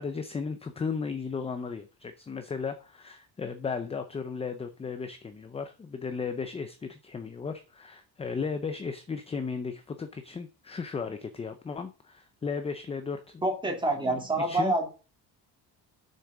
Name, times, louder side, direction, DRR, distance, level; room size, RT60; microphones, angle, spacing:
voice 1, 0.0-13.7 14.1-14.7, left 5 dB, 15° left, 8 dB, 0.5 m, -35 dB
voice 2, 13.4-14.9, right 2 dB, 10° right, 2 dB, 2.3 m, -27 dB
8.2 x 6.6 x 6.0 m, 0.35 s
cardioid pair, 175°, 40 cm